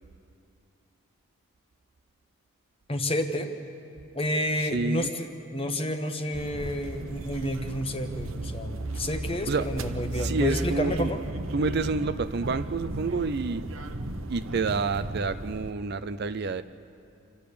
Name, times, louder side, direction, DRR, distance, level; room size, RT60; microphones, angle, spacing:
voice 1, 2.9-3.5 4.1-5.3 5.5-11.2, left 1 dB, 25° left, 6 dB, 1.1 m, -30 dB
voice 2, 4.6-5.1 9.5-9.7 10.1-11.1 11.5-13.6 14.3-16.6, right 4 dB, 45° right, 12 dB, 0.5 m, -28 dB
sound 1, 6.3-15.7, right 2 dB, 65° right, 1.0 m, -35 dB
28.5 x 12.0 x 8.5 m, 2.5 s
head